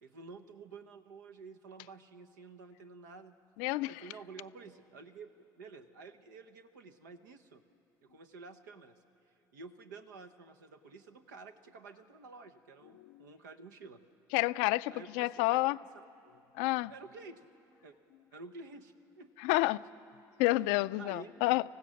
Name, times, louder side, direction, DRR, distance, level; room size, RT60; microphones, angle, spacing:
voice 1, 0.0-3.3 3.9-5.3 5.6-7.6 8.0-9.0 9.5-14.0 14.9-15.9 16.9-17.5 17.8-17.9 18.3-19.8 21.0-21.3, right 4 dB, 90° right, 6 dB, 0.9 m, -50 dB
voice 2, 3.6-3.9 14.3-15.8 16.6-16.9 19.4-19.8 20.4-21.6, left 20 dB, 75° left, 17 dB, 0.4 m, -29 dB
26.0 x 16.0 x 6.4 m, 2.8 s
hypercardioid pair, 65°, 10 cm